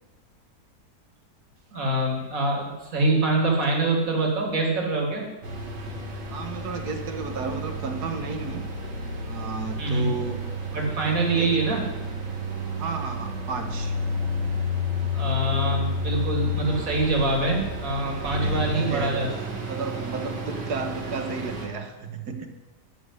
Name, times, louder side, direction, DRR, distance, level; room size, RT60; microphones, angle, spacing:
voice 1, 1.7-5.2 9.8-10.1 10.7-11.8 15.1-19.3, right 2 dB, 55° right, 1 dB, 3.0 m, -24 dB
sound 1, 5.4-21.7, left 1 dB, 85° right, 2.6 m, -31 dB
voice 2, 6.3-8.6 9.2-10.4 11.3-11.6 12.8-14.0 18.2-19.2 19.7-22.5, right 4 dB, 70° right, 6 dB, 1.8 m, -33 dB
12.5 x 7.2 x 9.8 m, 1.2 s
omnidirectional pair, 1.8 m